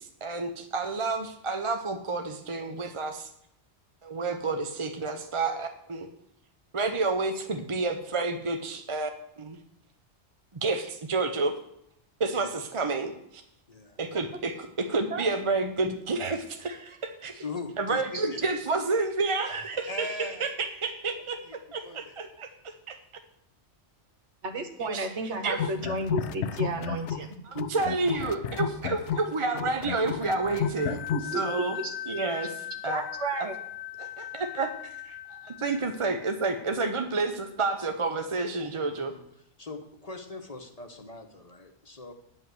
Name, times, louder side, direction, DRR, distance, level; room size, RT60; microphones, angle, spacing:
voice 1, 0.0-3.3 4.0-6.1 6.7-9.1 9.4-9.6 10.6-11.6 12.2-13.4 14.0-17.4 17.8-21.4 21.7-23.0 24.8-25.1 25.4-25.6 27.5-31.0 31.3-31.8 32.1-33.0 33.4-33.5 34.0-34.7 35.0-39.1, right 3 dB, 35° right, 6 dB, 0.6 m, -30 dB
voice 2, 17.4-18.5 19.9-20.5 21.4-21.5 21.8-22.2 38.8-39.2 39.6-42.1, left 3 dB, 35° left, 5 dB, 1.0 m, -40 dB
voice 3, 24.4-27.4 31.1-31.4 31.8-31.9 32.9-33.5, right 2 dB, 75° right, 6 dB, 1.5 m, -32 dB
sound 1, 25.5-27.3 27.6-31.3, left 8 dB, 80° left, 0.9 m, -32 dB
sound 2, 30.3-36.7, left 13 dB, 60° left, 0.4 m, -40 dB
9.3 x 5.5 x 7.6 m, 0.76 s
omnidirectional pair, 1.2 m